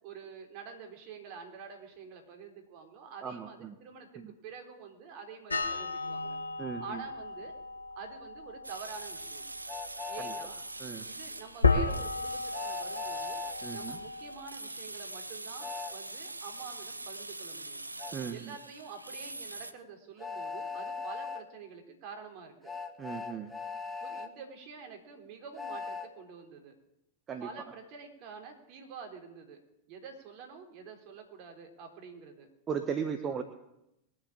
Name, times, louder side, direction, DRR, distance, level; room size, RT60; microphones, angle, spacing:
voice 1, 0.0-6.4 6.8-7.5 8.0-9.5 10.1-10.6 11.0-13.4 13.7-17.8 18.3-22.7 24.0-26.8 27.4-29.6 29.9-32.5 33.2-33.4, right 6 dB, 45° right, 3 dB, 4.1 m, -47 dB
voice 2, 3.2-3.7 4.2-4.3 6.6-7.0 10.2-10.3 10.8-11.1 13.6-14.0 18.1-18.5 23.0-23.5 27.3-27.5 32.7-33.4, right 6 dB, 25° right, 8 dB, 1.3 m, -37 dB
sound 1, 5.5-14.4, left 4 dB, 80° left, 1.8 m, -34 dB
sound 2, 8.6-19.7, right 2 dB, 80° right, 0.9 m, -43 dB
Train, 9.7-10.5 12.5-13.6 15.6-15.9 18.0-18.1 20.2-21.4 22.6-24.3 25.6-26.1, left 5 dB, 10° left, 1.7 m, -39 dB
21.5 x 7.7 x 8.7 m, 0.87 s
figure-of-eight pair, 90°, 0 cm